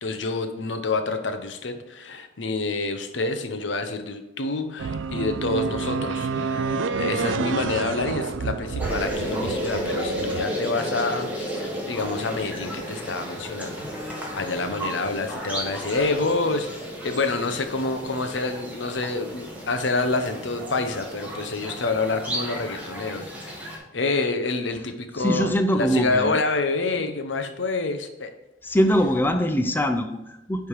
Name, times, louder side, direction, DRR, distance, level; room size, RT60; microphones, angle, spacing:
voice 1, 0.0-6.7 7.0-28.3, left 3 dB, 75° left, 8 dB, 0.8 m, -28 dB
sound 1, 4.8-10.5, right 4 dB, 85° right, 0.4 m, -28 dB
sound 2, 8.8-23.8, equal, 10° right, 1.7 m, -33 dB
voice 2, 25.2-26.4 28.6-30.7, equal, 10° left, 6 dB, 0.4 m, -23 dB
10.0 x 3.5 x 4.8 m, 0.91 s
head